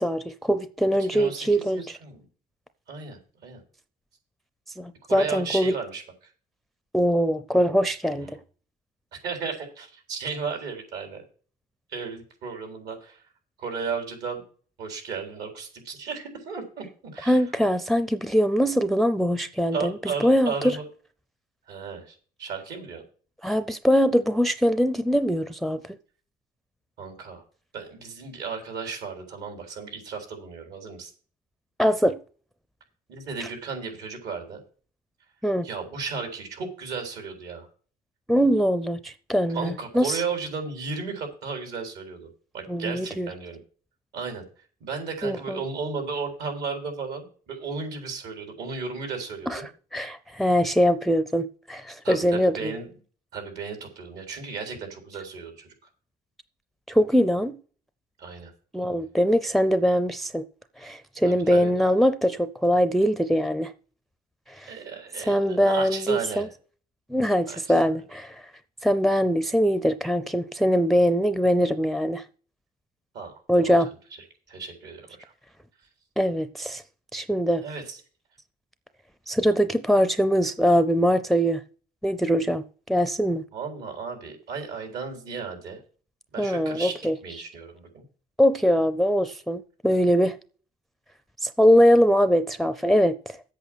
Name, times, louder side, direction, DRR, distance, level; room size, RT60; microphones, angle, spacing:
voice 1, 0.0-2.0 4.8-5.7 6.9-8.4 17.3-19.9 20.2-20.8 23.4-25.8 31.8-32.2 35.4-35.7 38.3-40.2 42.7-43.3 45.2-45.6 49.5-49.6 49.9-52.7 56.9-57.6 58.7-60.4 60.8-63.7 64.5-64.7 65.3-66.5 67.1-68.4 68.8-72.2 73.5-73.9 76.2-76.8 77.1-77.6 79.3-81.6 82.0-83.4 86.4-87.2 88.4-90.4 91.4-93.4, equal, ahead, 0.5 m, -22 dB
voice 2, 1.1-2.2 2.9-3.6 5.1-6.3 8.1-8.3 9.1-11.2 11.9-13.2 13.6-14.4 14.8-17.4 19.7-20.8 21.7-23.0 27.0-27.5 27.7-31.1 33.1-34.6 35.6-37.7 39.5-43.6 44.1-49.6 52.0-52.9 53.3-55.7 58.2-58.5 61.3-61.7 64.7-66.5 67.5-67.7 73.1-73.4 74.5-75.3 77.6-78.0 83.5-85.8 86.3-86.9 87.2-88.0, right 5 dB, 75° right, 3.9 m, -34 dB
8.3 x 8.2 x 6.2 m
cardioid pair, 110°, 17 cm